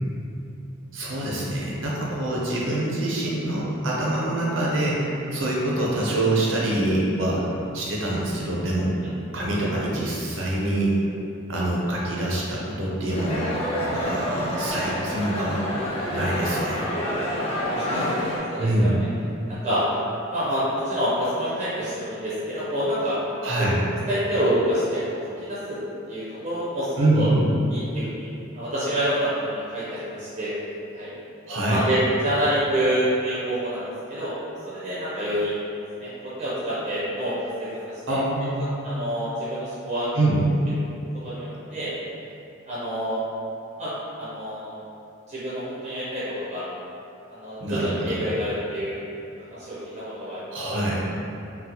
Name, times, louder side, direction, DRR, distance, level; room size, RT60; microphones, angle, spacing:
voice 1, 0.9-7.4 7.7-8.9 9.3-11.0 11.5-13.5 13.9-15.6 16.1-16.9 18.6-19.0 23.4-23.8 27.0-27.5 31.5-31.9 38.1-38.8 40.1-40.4 47.6-48.2 50.5-51.0, right 1 dB, 70° right, -4 dB, 0.7 m, -25 dB
sound 1, 13.1-18.4, equal, 30° left, 0.6 m, -28 dB
voice 2, 17.3-18.1 18.5-18.9 19.5-19.9 20.3-23.2 23.6-23.7 24.1-25.2 25.5-25.8 26.1-27.3 27.7-28.3 28.5-30.5 30.9-31.1 31.7-33.8 34.1-34.4 34.6-35.6 36.0-36.1 36.4-37.7 38.8-40.1 41.2-41.9 42.7-43.2 43.8-44.8 45.3-46.6 47.3-49.0 49.5-50.8, equal, 35° right, -10 dB, 0.6 m, -27 dB
3.8 x 2.0 x 2.9 m, 2.7 s
head